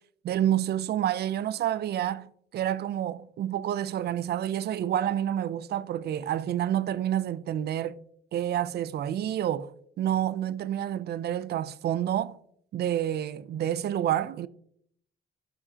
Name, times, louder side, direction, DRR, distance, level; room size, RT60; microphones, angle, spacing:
voice 1, 0.2-2.3 2.5-8.0 8.3-12.4 12.7-14.5, right 11 dB, 55° right, 0.4 m, -28 dB
12.5 x 5.1 x 2.8 m
cardioid pair, 90°, 20 cm